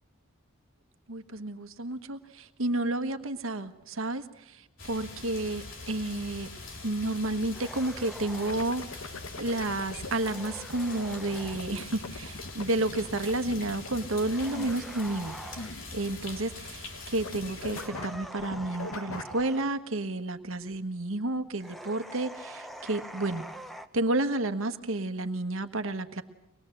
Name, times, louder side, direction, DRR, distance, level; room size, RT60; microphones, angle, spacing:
voice 1, 1.1-6.5 6.8-15.3 15.9-23.4 23.9-26.2, right 2 dB, 75° right, 10 dB, 1.4 m, -31 dB
sound 1, 4.8-17.9, left 3 dB, 65° left, 4.1 m, -43 dB
sound 2, 7.4-8.7 10.0-11.7 14.2-15.8 17.7-19.7 21.6-23.9, equal, ahead, 1.1 m, -44 dB
sound 3, 8.5-10.1 11.3-17.0 17.2-19.4, left 3 dB, 90° left, 1.4 m, -41 dB
24.0 x 20.5 x 7.8 m, 0.86 s
head